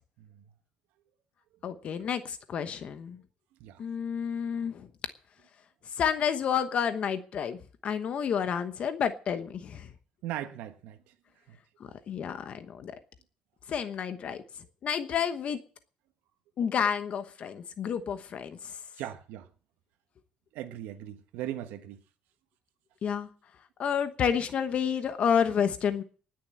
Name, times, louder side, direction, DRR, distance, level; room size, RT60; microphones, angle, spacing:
voice 1, 1.6-3.2 3.8-4.9 6.0-9.9 12.1-13.0 13.7-14.4 14.8-15.6 16.6-18.7 23.0-23.3 23.8-26.0, left 7 dB, 40° left, 1.1 m, -30 dB
voice 2, 10.2-11.1 11.5-11.6 11.9-12.0 18.9-19.5 20.5-22.0, right 12 dB, 85° right, 1.4 m, -39 dB
19.5 x 6.8 x 7.6 m
cardioid pair, 150°, 3 cm